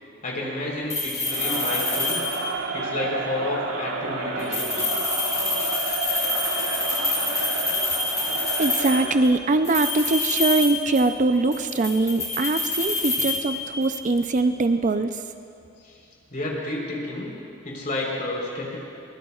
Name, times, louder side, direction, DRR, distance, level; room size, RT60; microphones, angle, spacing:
voice 1, 0.2-2.2 2.7-4.8 15.8-15.9 16.3-17.3 17.6-18.8, left 1 dB, 45° left, -3 dB, 3.9 m, -30 dB
sound 1, 0.9-2.6 4.4-9.1 9.6-11.2 11.5-14.0, left 2 dB, 15° left, 2.5 m, -27 dB
Crowd, 1.2-9.3, right 3 dB, 90° right, 1.4 m, -30 dB
voice 2, 8.6-15.2, right 2 dB, 40° right, 9 dB, 0.5 m, -22 dB
23.5 x 20.0 x 2.4 m, 2.6 s
head